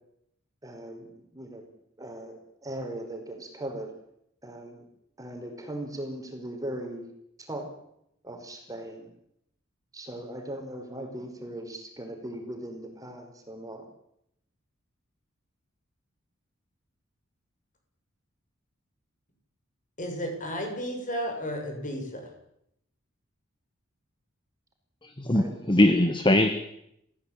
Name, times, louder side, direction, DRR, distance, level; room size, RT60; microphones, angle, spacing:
voice 1, 0.6-1.1 1.3-1.6 2.0-3.9 4.4-4.9 5.2-7.0 7.4-7.7 8.2-9.1 9.9-13.9 25.3-25.6, right 1 dB, 15° right, 4 dB, 5.1 m, -38 dB
voice 2, 20.0-22.2, equal, 40° left, 3 dB, 7.6 m, -33 dB
voice 3, 25.2-26.5, left 1 dB, 25° left, 9 dB, 1.5 m, -21 dB
28.5 x 16.0 x 9.0 m, 0.78 s
head